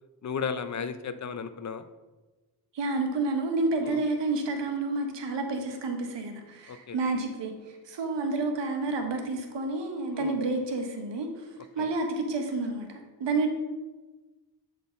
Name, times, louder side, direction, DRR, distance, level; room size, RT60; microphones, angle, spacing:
voice 1, 0.2-1.8 3.8-4.0 6.7-7.0 10.1-10.4 11.8-11.9, left 6 dB, 40° left, 12 dB, 0.6 m, -34 dB
voice 2, 2.7-11.5 11.7-13.5, right 3 dB, 80° right, 4 dB, 1.3 m, -30 dB
7.6 x 3.8 x 5.6 m, 1.2 s
cardioid pair, 50°, 43 cm